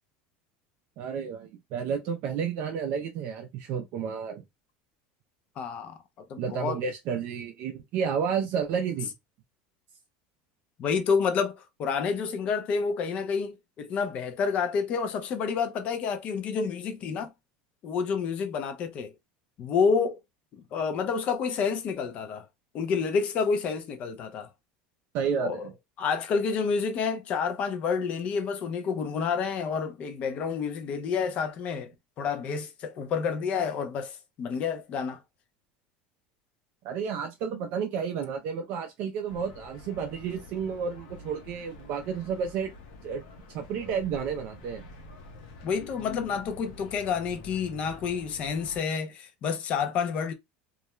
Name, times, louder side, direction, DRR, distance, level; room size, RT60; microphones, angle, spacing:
voice 1, 1.0-4.4 6.4-9.1 25.1-25.7 36.8-42.7 43.0-43.2 43.5-44.9, right 7 dB, 40° right, 0.3 m, -31 dB
voice 2, 5.6-6.0 6.3-6.8 10.8-17.3 17.8-19.1 19.6-20.2 20.5-22.4 22.7-24.5 25.4-25.7 26.0-31.9 32.2-35.2 45.6-50.3, left 5 dB, 30° left, 0.4 m, -29 dB
sound 1, 39.3-48.8, left 2 dB, 70° left, 0.7 m, -48 dB
2.3 x 2.1 x 2.9 m
cardioid pair, 170°, 4 cm